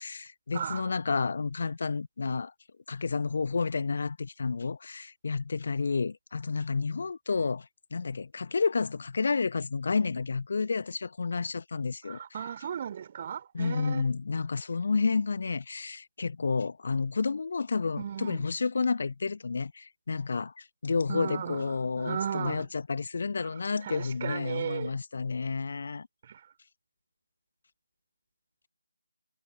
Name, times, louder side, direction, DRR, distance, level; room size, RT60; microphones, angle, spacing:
voice 1, 0.0-2.5 2.9-12.2 13.5-26.1, left 4 dB, 40° left, 1.3 m, -30 dB
voice 2, 0.5-0.8 12.1-14.1 18.0-18.5 21.1-22.7 23.8-24.9 26.3-26.4, right 8 dB, 25° right, 5.7 m, -36 dB
figure-of-eight pair, 155°, 0 cm